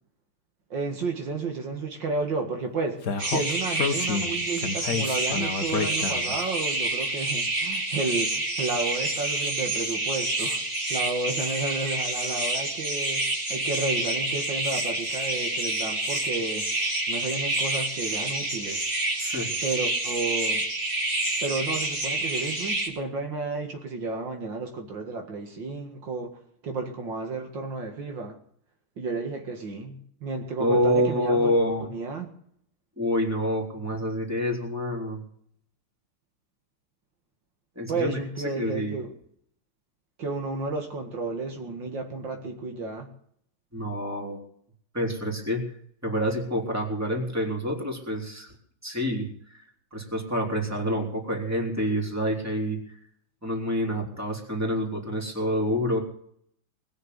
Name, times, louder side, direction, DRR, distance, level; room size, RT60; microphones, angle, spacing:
voice 1, 0.7-10.6 10.9-13.2 13.5-18.8 19.6-20.6 21.4-26.3 26.6-28.4 29.0-31.5 31.9-32.3 37.9-39.1 40.2-43.1, right 3 dB, 70° right, 2.7 m, -32 dB
Speech, 3.0-6.4, left 5 dB, 50° left, 1.7 m, -29 dB
sound 1, 3.2-22.9, right 2 dB, 35° right, 3.4 m, -28 dB
voice 2, 30.6-31.9 33.0-35.2 37.8-38.2 38.6-39.0 43.7-44.4 44.9-45.6 46.0-48.5 48.8-49.6 49.9-52.8 53.4-56.0, equal, 5° right, 3.8 m, -27 dB
20.5 x 6.9 x 9.6 m
omnidirectional pair, 2.1 m